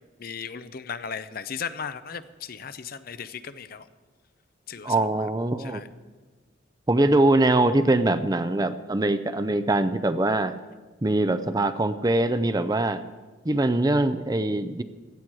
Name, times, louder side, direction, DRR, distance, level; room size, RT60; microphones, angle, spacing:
voice 1, 0.2-3.9 4.7-5.1 5.6-5.9, left 6 dB, 50° left, 13 dB, 0.6 m, -36 dB
voice 2, 4.8-5.8 6.9-10.6 11.0-13.0 13.4-14.8, right 2 dB, 20° right, 11 dB, 0.5 m, -23 dB
16.0 x 12.5 x 4.7 m, 1.3 s
head